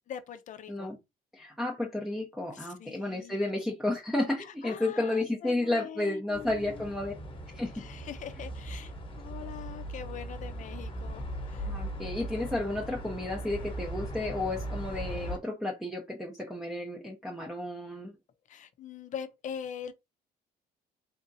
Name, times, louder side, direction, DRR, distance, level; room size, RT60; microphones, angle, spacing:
voice 1, 0.1-0.9 2.5-3.4 4.4-6.8 7.7-11.7 18.5-19.9, left 8 dB, 45° left, 0.6 m, -43 dB
voice 2, 1.3-7.1 7.5-7.8 11.7-18.1, left 2 dB, ahead, 0.7 m, -32 dB
sound 1, 6.3-15.4, right 1 dB, 30° left, 1.1 m, -39 dB
3.5 x 2.8 x 2.7 m
cardioid pair, 110°, 17 cm